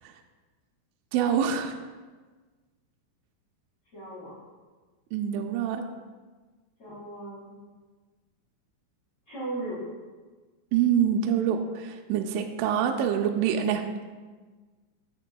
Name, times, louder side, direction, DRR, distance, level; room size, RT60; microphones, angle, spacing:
voice 1, 1.1-1.7 5.1-5.8 10.7-13.8, right 8 dB, 85° right, 4 dB, 2.9 m, -25 dB
voice 2, 3.9-4.4 6.8-7.5 9.3-9.8, right 2 dB, 50° left, -10 dB, 2.0 m, -37 dB
13.5 x 6.6 x 2.2 m, 1.4 s
omnidirectional pair, 5.8 m